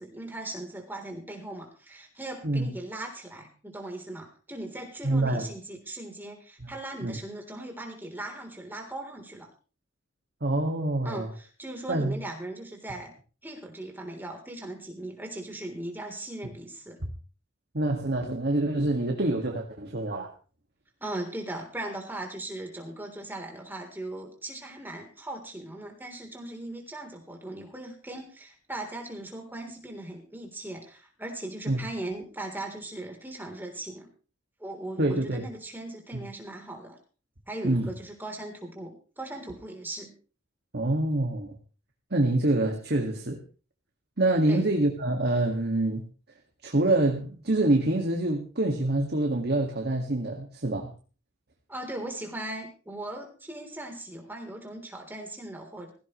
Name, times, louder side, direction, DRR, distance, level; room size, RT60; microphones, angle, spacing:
voice 1, 0.0-9.5 11.0-13.1 13.4-17.0 21.0-34.1 34.6-37.0 37.5-40.1 44.5-44.7 51.7-55.9, right 1 dB, 10° right, 2 dB, 3.6 m, -39 dB
voice 2, 5.0-5.5 6.6-6.7 7.0-7.2 10.4-11.3 11.9-12.2 17.7-20.3 31.7-31.8 35.0-35.4 36.1-36.2 37.6-37.9 40.7-41.6 42.1-43.4 44.2-46.0 46.6-50.9, right 2 dB, 55° right, 2 dB, 2.0 m, -26 dB
16.5 x 16.5 x 3.2 m, 0.37 s
head